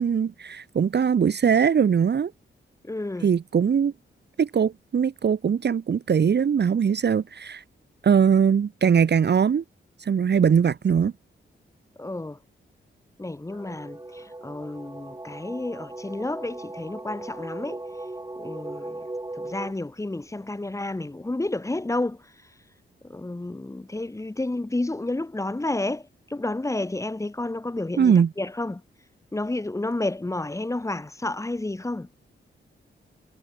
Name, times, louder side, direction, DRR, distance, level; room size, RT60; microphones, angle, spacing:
voice 1, 0.0-2.3 3.2-3.9 4.4-7.6 8.0-9.6 10.0-11.1 28.0-28.3, right 7 dB, 55° right, 1.2 m, -21 dB
voice 2, 2.8-3.3 12.0-12.4 13.2-17.8 18.4-19.0 19.4-22.2 23.0-28.8 29.3-32.1, left 2 dB, 15° left, 1.2 m, -31 dB
sound 1, 13.5-19.7, right 2 dB, 15° right, 3.3 m, -38 dB
cardioid pair, 90°, 21 cm